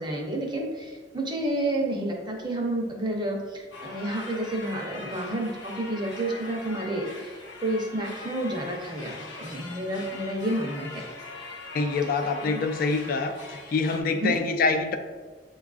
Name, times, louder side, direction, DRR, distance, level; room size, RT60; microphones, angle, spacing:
voice 1, 0.0-11.0 12.4-12.6 14.1-14.3, right 1 dB, 25° right, 0 dB, 0.7 m, -30 dB
sound 1, 3.7-14.0, left 3 dB, 85° left, 0.7 m, -41 dB
voice 2, 11.7-13.4 13.7-15.0, left 4 dB, 55° left, 6 dB, 0.3 m, -25 dB
6.8 x 2.3 x 2.4 m, 1.4 s
head